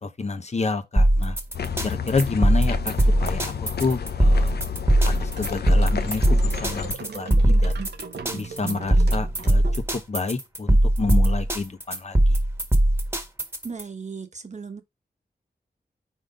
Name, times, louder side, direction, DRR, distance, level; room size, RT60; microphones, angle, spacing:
voice 1, 0.0-1.4 1.8-3.5 3.8-4.6 5.2-7.8 8.3-12.4, left 4 dB, 40° left, 0.9 m, -29 dB
sound 1, 1.0-13.8, right 1 dB, 15° right, 1.4 m, -20 dB
sound 2, 1.5-6.9, left 7 dB, 75° left, 0.6 m, -31 dB
sound 3, 5.4-10.2, right 6 dB, 80° right, 0.9 m, -38 dB
voice 2, 13.6-14.8, right 5 dB, 45° right, 1.2 m, -36 dB
4.8 x 3.9 x 5.0 m
wide cardioid pair, 110°, 17 cm